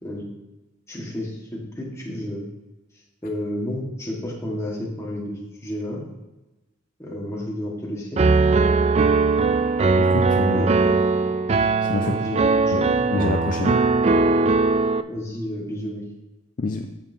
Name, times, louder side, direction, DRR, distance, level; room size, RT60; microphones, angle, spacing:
voice 1, 0.9-2.4 3.2-6.0 7.0-8.2 10.5-11.3 12.0-12.9 15.1-16.0, left 1 dB, 15° left, -3 dB, 1.7 m, -31 dB
Piano, 8.2-15.0, right 3 dB, 30° right, 0.3 m, -19 dB
voice 2, 10.0-10.6 11.8-12.2 12.7-12.8 13.1-13.9 16.6-17.0, left 3 dB, 40° left, 5 dB, 0.4 m, -26 dB
13.5 x 5.6 x 2.8 m, 1.0 s
head